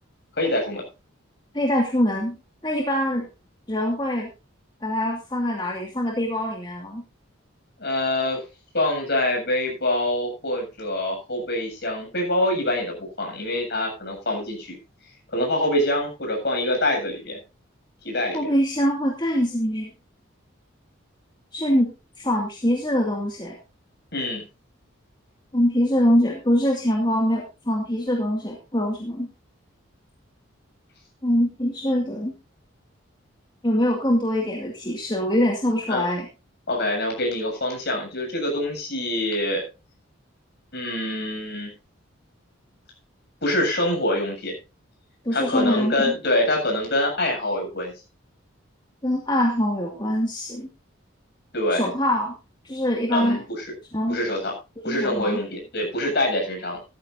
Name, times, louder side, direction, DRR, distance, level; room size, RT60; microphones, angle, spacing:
voice 1, 0.4-0.9 7.8-8.4 8.7-14.8 15.3-17.4 18.0-18.5 24.1-24.5 35.9-36.1 36.7-39.7 40.7-41.7 43.4-44.6 45.3-47.9 51.5-51.9 53.1-53.4 54.1-54.5 54.8-56.8, left 1 dB, 55° left, 1 dB, 7.8 m, -25 dB
voice 2, 1.5-2.4 2.6-3.3 3.7-4.3 4.8-7.0 18.3-19.9 21.5-23.5 25.5-29.3 31.2-32.3 33.6-36.3 45.2-46.2 49.0-50.7 51.7-52.4 52.6-53.4 53.9-54.2 54.8-55.4, equal, 20° left, 0 dB, 2.3 m, -23 dB
16.5 x 13.5 x 2.7 m, 0.29 s
head